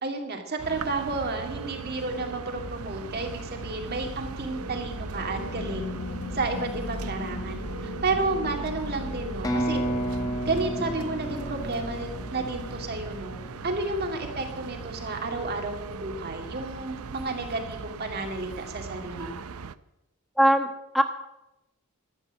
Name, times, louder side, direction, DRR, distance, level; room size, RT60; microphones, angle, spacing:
voice 1, 0.0-5.9 6.3-9.8 10.5-19.4, right 3 dB, 45° right, 3 dB, 2.2 m, -31 dB
sound 1, 0.6-19.7, right 5 dB, 85° right, 0.6 m, -39 dB
sound 2, 1.6-15.2, left 2 dB, 75° left, 0.9 m, -39 dB
sound 3, 9.4-13.2, right 1 dB, 15° left, 1.3 m, -32 dB
voice 2, 20.4-21.0, equal, ahead, 5 dB, 1.1 m, -21 dB
12.5 x 8.3 x 9.1 m, 0.94 s
head